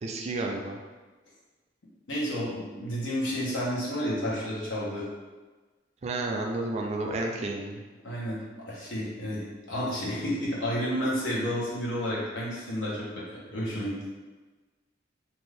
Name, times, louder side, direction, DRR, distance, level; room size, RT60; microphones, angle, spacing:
voice 1, 0.0-0.8 6.0-7.8, right 2 dB, 35° right, 1 dB, 0.3 m, -31 dB
voice 2, 2.1-5.0 8.0-14.0, equal, 80° left, -6 dB, 0.9 m, -31 dB
2.6 x 2.4 x 3.3 m, 1.3 s
head